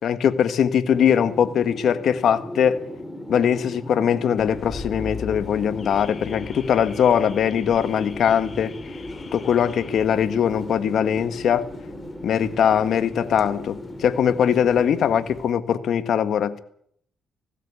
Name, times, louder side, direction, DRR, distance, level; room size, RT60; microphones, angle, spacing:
voice 1, 0.0-2.8 3.3-8.7 9.3-11.6 12.2-16.6, left 8 dB, 65° left, 11 dB, 1.6 m, -21 dB
sound 1, 0.9-15.3, left 1 dB, 5° left, 4.3 m, -37 dB
Car / Alarm, 4.4-15.5, left 5 dB, 40° left, 2.6 m, -42 dB
19.0 x 16.5 x 8.4 m, 0.66 s
cardioid pair, 90°, 0 cm